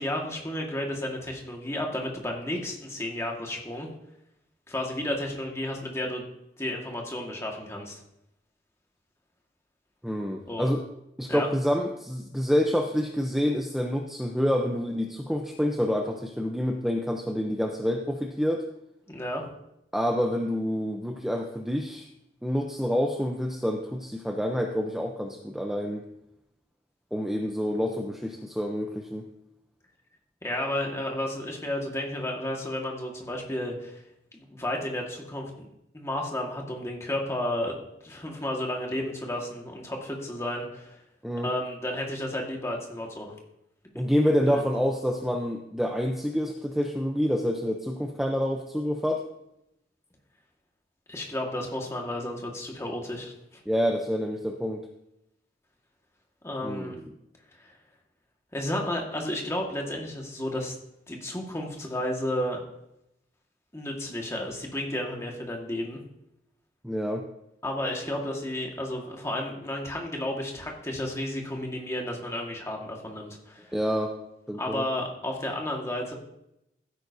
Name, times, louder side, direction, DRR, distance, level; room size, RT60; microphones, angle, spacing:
voice 1, 0.0-3.9 4.7-6.2 6.6-7.9 10.5-10.7 11.3-11.5 19.1-19.4 30.4-34.0 34.4-35.7 35.9-41.0 41.4-43.3 44.5-44.9 51.1-53.6 56.4-57.0 57.6-57.7 58.5-60.7 61.1-62.6 63.7-66.0 67.6-73.7 74.6-76.1, left 1 dB, 15° left, 0 dB, 1.7 m, -32 dB
voice 2, 10.0-10.9 11.2-18.7 19.9-22.1 22.4-26.0 27.1-29.3 41.2-41.5 44.0-49.2 53.7-54.8 56.6-57.1 66.8-67.2 73.7-74.1 74.5-74.8, equal, ahead, 2 dB, 0.6 m, -27 dB
15.5 x 9.0 x 2.7 m, 0.83 s
head